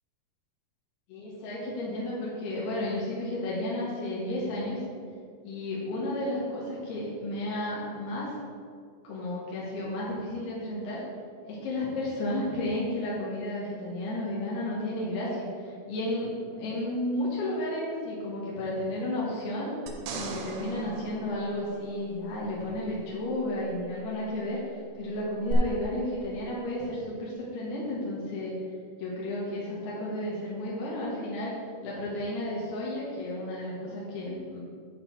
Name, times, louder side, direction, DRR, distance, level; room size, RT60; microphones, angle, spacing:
voice 1, 1.1-4.8 5.4-8.4 9.0-11.0 11.4-19.7 20.1-28.6 29.0-31.5 31.8-34.6, left 1 dB, 75° left, -6 dB, 3.7 m, -32 dB
sound 1, 19.9-22.4 25.5-25.6, right 5 dB, 80° right, 2.9 m, -39 dB
11.0 x 3.9 x 7.1 m, 2.1 s
omnidirectional pair, 4.7 m